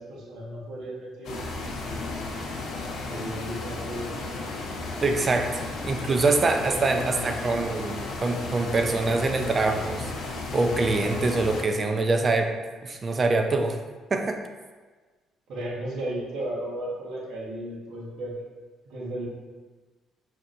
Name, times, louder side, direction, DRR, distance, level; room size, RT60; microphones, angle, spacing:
voice 1, 0.0-2.1 3.0-4.2 5.9-6.1 6.4-7.7 15.5-18.5 18.8-19.3, right 1 dB, 70° right, -5 dB, 1.2 m, -35 dB
sound 1, 1.2-11.6, left 2 dB, 70° left, 0.8 m, -34 dB
voice 2, 5.0-12.5 12.8-13.8 14.1-14.4, right 3 dB, 35° right, 5 dB, 0.5 m, -25 dB
5.7 x 2.8 x 2.6 m, 1.3 s
supercardioid pair, 75°, 0 cm